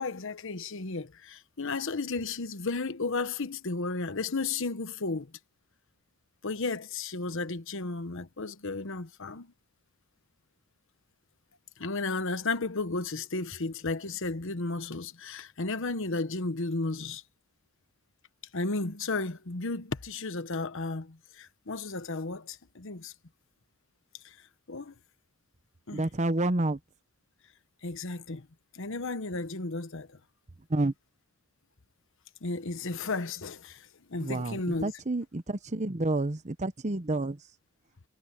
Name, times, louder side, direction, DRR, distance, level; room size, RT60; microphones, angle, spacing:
voice 1, 0.0-5.4 6.4-9.5 11.8-17.2 18.5-23.1 24.2-24.9 25.9-26.1 27.8-28.5 28.7-30.2 32.4-34.9, left 3 dB, 60° left, 1.1 m, -34 dB
voice 2, 25.9-26.8 30.7-30.9 34.2-37.4, right 2 dB, 30° right, 0.9 m, -29 dB
head